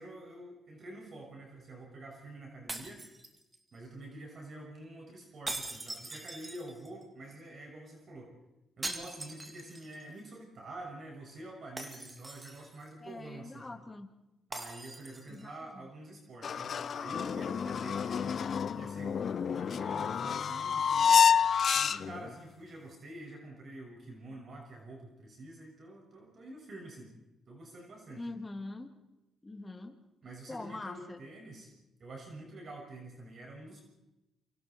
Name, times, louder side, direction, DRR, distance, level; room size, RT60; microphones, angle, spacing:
voice 1, 0.0-3.0 3.7-8.3 8.8-13.7 14.5-21.2 21.7-27.1 27.5-28.3 30.2-31.7 32.0-33.8, right 2 dB, 50° right, 0 dB, 6.4 m, -47 dB
sound 1, 2.7-3.8 5.5-7.0 8.8-10.0 10.4-10.5 11.8-12.8 14.5-15.5, right 2 dB, 20° right, 2.5 m, -42 dB
voice 2, 13.0-14.1 15.3-15.5 28.2-28.9 29.4-30.0 30.5-31.2, left 2 dB, 20° left, 5 dB, 2.6 m, -43 dB
sound 2, 16.4-22.3, left 7 dB, 50° left, 0.7 m, -28 dB
28.5 x 24.5 x 4.6 m, 0.92 s
cardioid pair, 90°, 0 cm